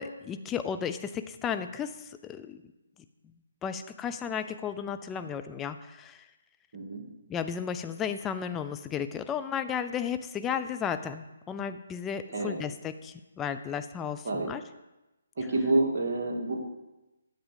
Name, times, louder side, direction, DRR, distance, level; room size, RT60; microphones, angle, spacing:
voice 1, 0.0-2.6 3.6-6.2 7.3-14.6, left 7 dB, 15° left, 9 dB, 0.5 m, -34 dB
voice 2, 15.4-16.7, right 2 dB, 50° right, -1 dB, 2.3 m, -28 dB
10.0 x 7.4 x 5.2 m, 1.0 s
figure-of-eight pair, 145°, 0 cm